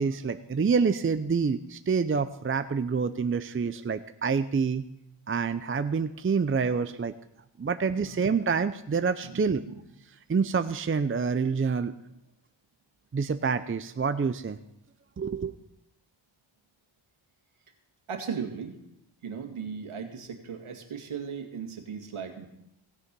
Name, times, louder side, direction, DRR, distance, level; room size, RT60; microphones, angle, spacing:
voice 1, 0.0-4.8 5.3-7.1 7.6-9.6 10.3-11.9 13.1-14.6 15.2-15.5, right 5 dB, 25° right, 10 dB, 0.6 m, -27 dB
voice 2, 9.2-9.8 18.1-18.8 19.2-22.5, right 6 dB, 80° right, 4 dB, 2.0 m, -37 dB
16.5 x 6.9 x 5.4 m, 0.80 s
cardioid pair, 60°, 49 cm